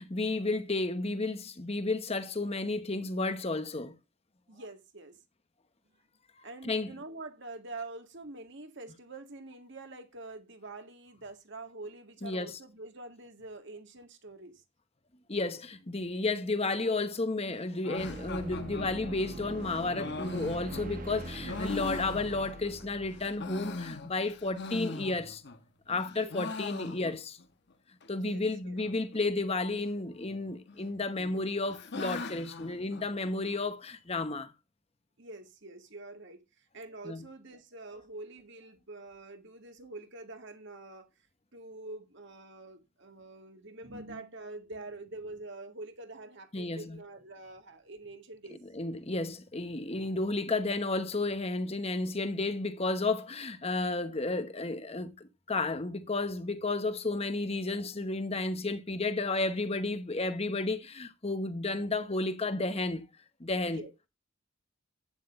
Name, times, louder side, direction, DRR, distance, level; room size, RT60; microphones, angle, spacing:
voice 1, 0.0-3.9 6.6-6.9 12.2-12.6 15.3-25.4 25.9-27.4 28.1-34.5 37.0-37.2 46.5-47.0 48.7-63.0 63.4-63.8, left 2 dB, 30° left, 1.0 m, -32 dB
voice 2, 4.5-5.2 6.4-14.6 26.1-26.4 28.1-28.8 35.2-41.1 41.5-48.6 63.7-63.9, right 2 dB, 55° right, 1.9 m, -46 dB
sound 1, 17.8-22.8 23.2-25.6 25.9-27.4 27.7-27.8 28.0-28.1 28.8-29.2 30.2-30.8 31.2-33.6, left 3 dB, 55° left, 1.0 m, -41 dB
sound 2, 18.0-24.6, right 1 dB, 40° right, 1.2 m, -43 dB
11.5 x 9.3 x 2.5 m
head